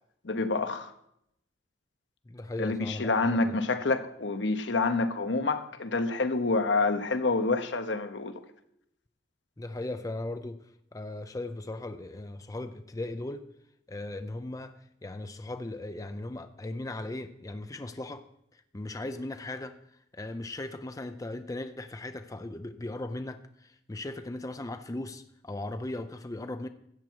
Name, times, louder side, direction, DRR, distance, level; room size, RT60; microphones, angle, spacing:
voice 1, 0.2-0.9 2.6-8.3, left 3 dB, 75° left, 1.0 m, -28 dB
voice 2, 2.3-3.6 9.6-10.6 10.9-13.4 13.9-18.2 18.5-19.8 20.1-26.7, left 2 dB, 20° left, 0.5 m, -38 dB
13.5 x 8.3 x 4.6 m
head